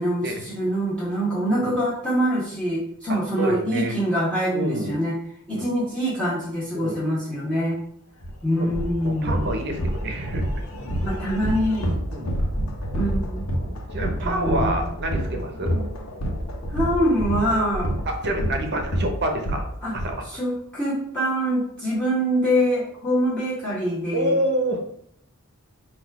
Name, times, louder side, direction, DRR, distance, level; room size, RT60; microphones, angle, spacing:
voice 1, 0.0-5.1 5.5-7.8 8.4-9.5 11.0-11.9 12.9-13.5 14.2-14.9 15.5-16.0 16.7-17.9 19.8-19.9 20.3-24.3, equal, 5° left, -8 dB, 1.2 m, -24 dB
voice 2, 1.5-1.8 3.1-4.0 4.5-5.0 5.5-5.7 6.7-7.0 8.6-8.7 9.0-10.5 12.1-12.3 13.6-15.7 18.1-19.6 19.9-20.3 24.1-24.8, right 1 dB, 50° right, 4 dB, 0.8 m, -27 dB
sound 1, 8.2-8.3 8.7-20.1, equal, 75° left, 0.9 m, -27 dB
4.0 x 2.4 x 4.7 m, 0.67 s
head